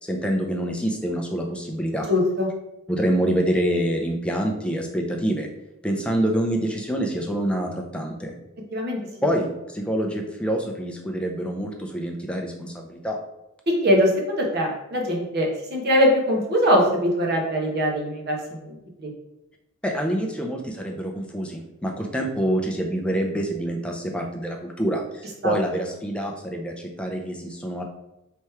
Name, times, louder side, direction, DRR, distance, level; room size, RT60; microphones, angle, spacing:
voice 1, 0.0-2.1 2.9-5.5 5.8-8.4 9.2-13.2 19.8-27.8, right 1 dB, 5° left, 2 dB, 0.5 m, -26 dB
voice 2, 2.1-2.5 8.7-9.0 13.8-19.1 25.4-25.5, equal, 45° right, 0 dB, 1.0 m, -22 dB
3.4 x 3.0 x 4.4 m, 0.91 s
head